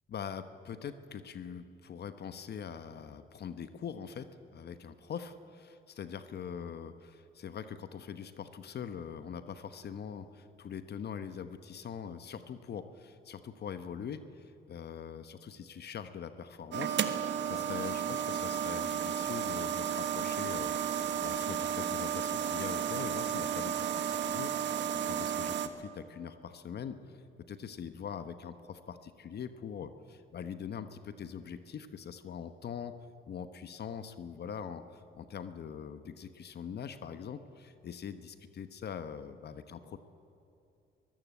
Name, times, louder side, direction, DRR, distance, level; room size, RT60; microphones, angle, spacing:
voice 1, 0.1-32.9 33.3-40.0, left 7 dB, 55° left, 10 dB, 1.1 m, -43 dB
sound 1, 16.7-25.7, right 8 dB, 65° right, 1.4 m, -33 dB
22.5 x 15.0 x 8.4 m, 2.8 s
cardioid pair, 90°, 20 cm